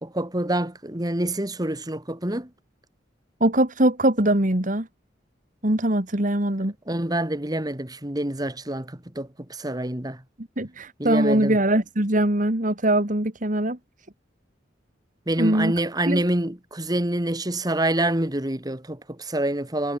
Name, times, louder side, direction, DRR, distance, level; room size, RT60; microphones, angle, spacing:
voice 1, 0.0-2.5 6.9-10.2 11.0-11.6 15.3-20.0, right 1 dB, 20° right, 2.0 m, -26 dB
voice 2, 3.4-4.9 5.6-6.7 10.6-13.8 15.4-15.7 16.1-16.2, right 1 dB, 45° right, 2.6 m, -22 dB
head